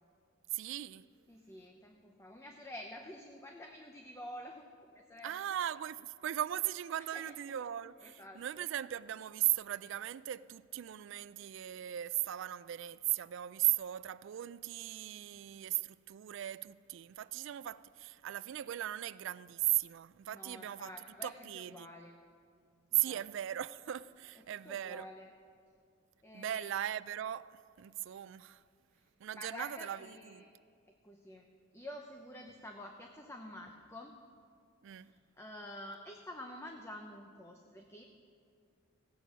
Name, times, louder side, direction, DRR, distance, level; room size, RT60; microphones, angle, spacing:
voice 1, 0.5-1.1 5.2-20.9 21.2-21.9 23.0-25.1 26.3-28.6 29.2-30.0 30.3-30.4 34.8-35.1, right 13 dB, 65° right, 0.3 m, -37 dB
voice 2, 1.3-4.7 4.9-5.6 7.1-7.6 8.0-8.4 20.3-22.2 23.0-23.2 24.4-25.3 26.2-26.7 28.9-29.0 29.3-30.5 31.0-31.5 31.7-34.2 35.0-38.0, left 1 dB, 15° left, 0.7 m, -49 dB
16.0 x 8.3 x 6.1 m
head